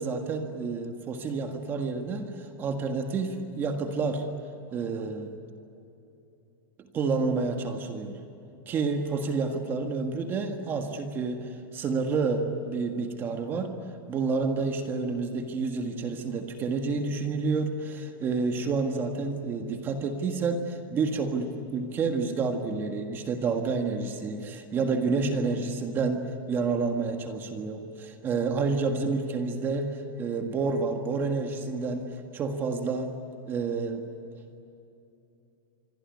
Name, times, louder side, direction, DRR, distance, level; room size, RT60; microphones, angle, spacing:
voice 1, 0.0-4.2 4.7-5.3 6.9-8.2 8.7-13.7 14.1-32.0 32.3-33.1 33.5-34.0, right 4 dB, 15° right, 5 dB, 1.7 m, -29 dB
26.5 x 23.0 x 9.6 m, 2.8 s
supercardioid pair, 175°, 12 cm